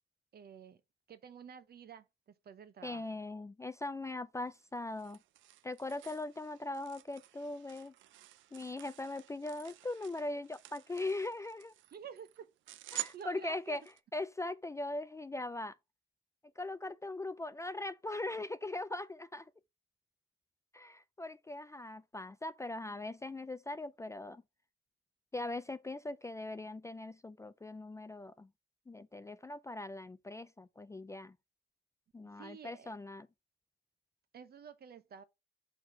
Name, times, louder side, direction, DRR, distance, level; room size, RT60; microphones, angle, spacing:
voice 1, 0.3-0.8 1.1-3.0 11.9-12.5 12.9-13.8 32.4-32.9 34.3-35.2, right 7 dB, 55° right, 0.9 m, -50 dB
voice 2, 2.8-5.2 5.6-7.9 8.5-11.7 12.9-13.8 14.1-15.8 16.6-19.5 20.7-24.4 25.3-28.5 28.9-31.4 32.1-33.3, left 2 dB, 15° left, 0.3 m, -40 dB
sound 1, 4.5-14.0, right 11 dB, 75° right, 0.4 m, -50 dB
4.8 x 4.1 x 5.5 m
cardioid pair, 90°, 20 cm